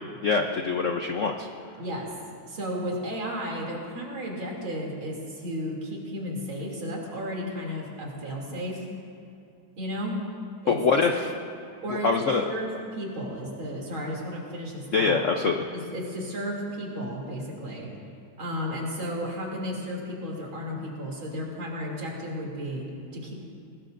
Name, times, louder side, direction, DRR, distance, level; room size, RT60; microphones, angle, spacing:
voice 1, 0.2-1.5 10.7-11.3 11.9-12.4 14.9-15.6, left 4 dB, 65° left, 3 dB, 0.7 m, -24 dB
voice 2, 1.8-2.1 2.5-8.9 9.8-10.2 10.6-10.8 11.8-15.2 15.7-17.9 18.4-23.3, equal, 70° right, -2 dB, 3.7 m, -33 dB
24.5 x 20.0 x 2.6 m, 2.6 s
omnidirectional pair, 2.3 m